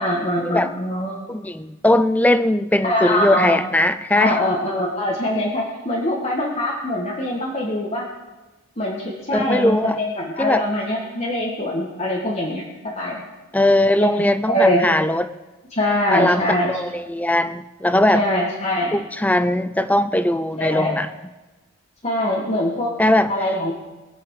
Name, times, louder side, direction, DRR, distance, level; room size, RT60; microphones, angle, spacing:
voice 1, 0.0-1.2 2.8-3.6 4.1-8.0 8.8-12.6 12.9-13.2 14.0-14.8 15.7-16.8 18.1-19.0 20.6-21.0 22.0-22.9 23.3-23.7, left 1 dB, 30° left, -4 dB, 1.8 m, -23 dB
voice 2, 1.3-4.4 9.3-10.0 10.4-10.6 13.5-15.3 16.1-16.4 16.7-18.2 18.9-21.1 23.0-23.3, left 1 dB, 5° left, 13 dB, 0.4 m, -19 dB
23.0 x 8.2 x 4.9 m, 1.2 s
head